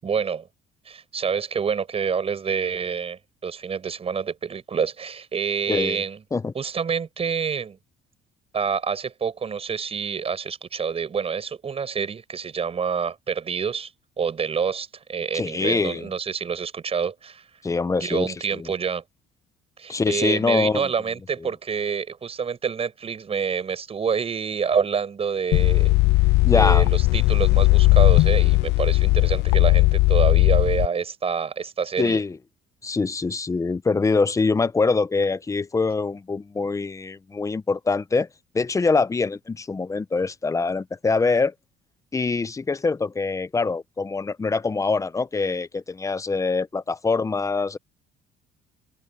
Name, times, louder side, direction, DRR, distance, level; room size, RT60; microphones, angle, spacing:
voice 1, 0.0-0.5 0.9-6.2 6.5-7.8 8.5-13.9 14.2-17.4 18.0-19.0 19.8-32.2, right 6 dB, 35° right, 6.1 m, -27 dB
voice 2, 5.7-6.0 6.3-6.5 15.3-16.1 17.6-18.7 19.9-20.9 26.4-26.9 32.0-32.4 32.8-38.3 38.5-41.5 42.1-47.8, left 4 dB, 20° left, 0.7 m, -24 dB
sound 1, 25.5-30.9, left 21 dB, 80° left, 0.4 m, -17 dB
cardioid pair, 110°, 17 cm